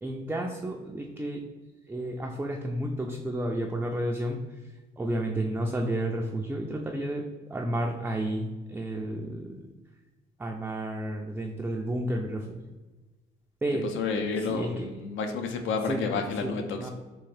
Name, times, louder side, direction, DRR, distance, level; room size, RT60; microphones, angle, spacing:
voice 1, 0.0-1.4 1.9-9.7 10.4-12.7 13.6-13.9 14.4-14.9 15.8-16.1 16.4-16.9, right 1 dB, 10° right, 0 dB, 0.3 m, -32 dB
voice 2, 13.9-16.9, left 4 dB, 75° left, 5 dB, 0.5 m, -30 dB
3.6 x 2.5 x 3.3 m, 1.2 s
cardioid pair, 90°, 20 cm